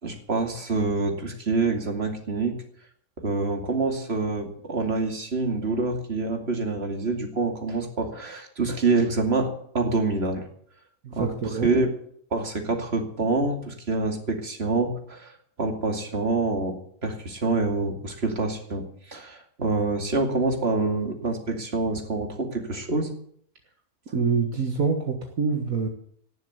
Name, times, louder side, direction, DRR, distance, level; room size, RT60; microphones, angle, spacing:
voice 1, 0.0-2.6 3.2-10.5 11.1-11.9 12.3-23.1, right 3 dB, 40° right, 3 dB, 2.8 m, -26 dB
voice 2, 11.0-11.7 24.1-25.9, right 5 dB, 65° right, 2 dB, 2.0 m, -26 dB
18.5 x 7.2 x 9.5 m, 0.63 s
omnidirectional pair, 1.6 m